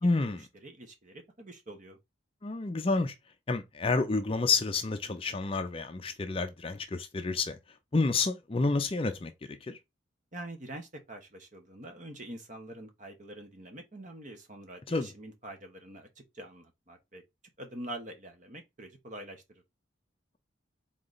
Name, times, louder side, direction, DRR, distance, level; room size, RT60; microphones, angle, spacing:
voice 1, 0.0-0.4 2.4-3.1 3.5-7.6 7.9-9.8 14.9-15.1, left 3 dB, 30° left, 0.4 m, -29 dB
voice 2, 0.6-2.0 10.3-16.1 16.3-17.2 17.6-19.4, right 1 dB, 40° right, 1.0 m, -45 dB
3.8 x 3.2 x 3.9 m
head